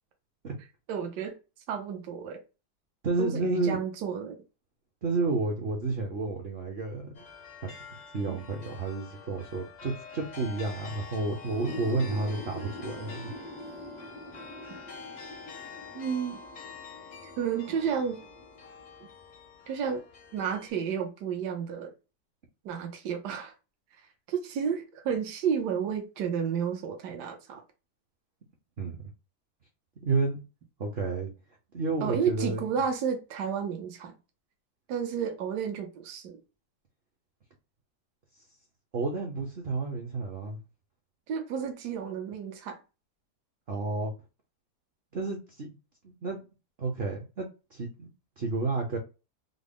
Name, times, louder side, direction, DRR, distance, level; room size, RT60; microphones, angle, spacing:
voice 1, 0.9-1.4 1.7-2.4 3.2-4.4 8.3-8.4 15.9-16.4 17.4-18.2 19.7-20.0 20.3-21.9 22.6-23.5 24.3-27.6 32.0-34.1 34.9-36.4 41.3-42.8, right 7 dB, 80° right, 1.3 m, -31 dB
voice 2, 3.0-3.8 5.0-7.2 7.6-7.7 8.1-13.3 28.8-29.1 30.0-30.4 30.8-31.3 31.7-32.6 38.9-40.6 43.7-44.1 45.1-45.7 46.0-46.4 46.8-48.1 48.4-49.0, right 3 dB, 55° right, 0.7 m, -31 dB
sound 1, 7.1-20.7, left 5 dB, 60° left, 0.4 m, -47 dB
sound 2, 11.3-18.9, left 1 dB, 5° right, 0.4 m, -45 dB
3.8 x 2.0 x 3.5 m
omnidirectional pair, 1.8 m